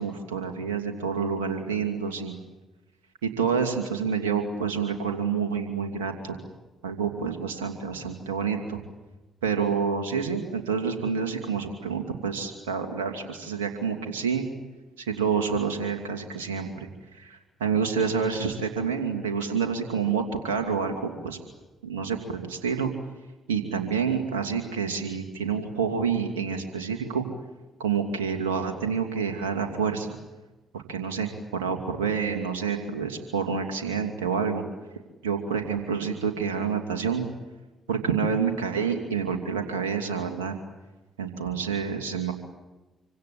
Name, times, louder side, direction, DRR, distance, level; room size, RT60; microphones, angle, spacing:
voice 1, 0.0-2.4 3.2-6.4 6.8-8.8 9.4-14.5 15.0-21.4 21.8-22.9 23.5-27.2 27.8-30.2 30.7-34.6 35.2-37.3 37.9-40.6 41.2-42.3, right 6 dB, 90° right, 4 dB, 2.6 m, -28 dB
26.5 x 25.5 x 8.6 m, 1.1 s
hypercardioid pair, 45°, 0 cm